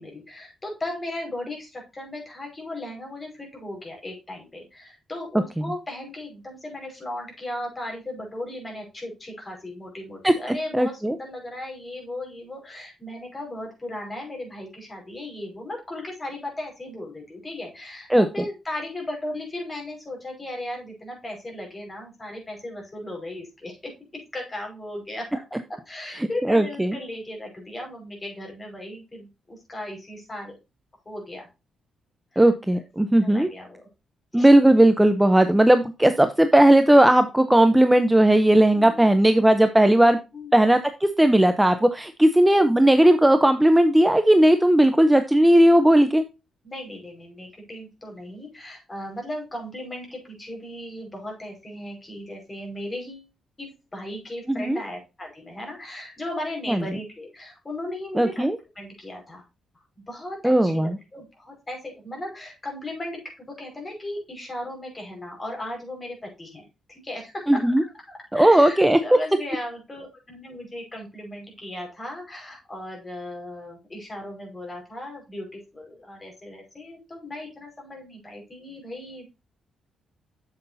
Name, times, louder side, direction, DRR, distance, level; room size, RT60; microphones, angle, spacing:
voice 1, 0.0-30.5 31.1-31.5 32.3-32.4 32.7-32.8 33.2-33.9 34.3-34.5 38.7-39.1 40.3-40.6 42.3-42.5 46.6-53.3 53.6-58.5 58.8-59.4 60.0-67.7 68.3-79.2, left 1 dB, 25° left, 1 dB, 5.2 m, -36 dB
voice 2, 10.7-11.2 18.1-18.3 26.2-27.0 32.4-33.5 34.3-40.2 40.5-46.2 54.5-54.8 56.7-56.8 58.2-58.6 60.4-61.0 67.5-67.8 68.3-69.0, right 1 dB, 10° right, 9 dB, 0.7 m, -17 dB
8.0 x 7.8 x 2.7 m, 0.27 s
cardioid pair, 95°, 0 cm